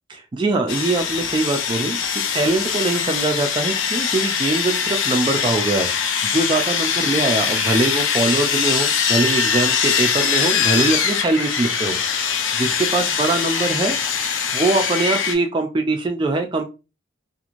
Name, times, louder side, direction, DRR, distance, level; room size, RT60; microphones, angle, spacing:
voice 1, 0.1-2.0 2.3-5.9 6.2-12.0 12.2-14.0 14.5-16.7, right 2 dB, 25° right, 4 dB, 0.3 m, -22 dB
Sawing, 0.7-15.3, left 7 dB, 75° left, 0.5 m, -22 dB
3.0 x 2.5 x 2.5 m, 0.29 s
head